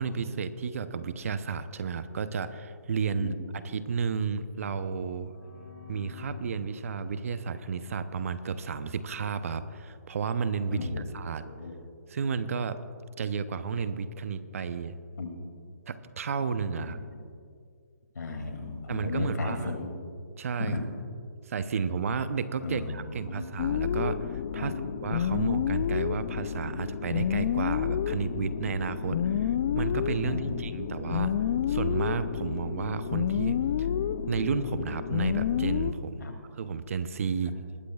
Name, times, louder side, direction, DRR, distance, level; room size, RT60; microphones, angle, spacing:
voice 1, 0.0-3.4 3.6-5.3 5.9-10.9 11.1-11.5 12.1-12.8 13.2-15.0 15.9-17.0 18.9-19.7 20.4-20.8 21.5-24.7 25.0-29.2 29.7-31.3 31.7-33.9 34.3-36.3 36.6-37.6, right 6 dB, 50° right, 12 dB, 0.7 m, -32 dB
sound 1, 5.1-8.8, left 6 dB, 60° left, 2.8 m, -49 dB
voice 2, 10.7-11.1 11.4-11.7 15.2-15.3 16.8-17.2 18.1-19.9 20.6-20.8 22.6-23.5 24.5-24.8 25.3-25.4 29.0-29.5 30.2-30.7 36.2-36.4, left 3 dB, 80° left, 4 dB, 2.5 m, -35 dB
sound 2, 23.6-35.9, left 9 dB, 35° left, 0.3 m, -29 dB
20.0 x 13.0 x 2.3 m, 2.2 s
hypercardioid pair, 155°, 9 cm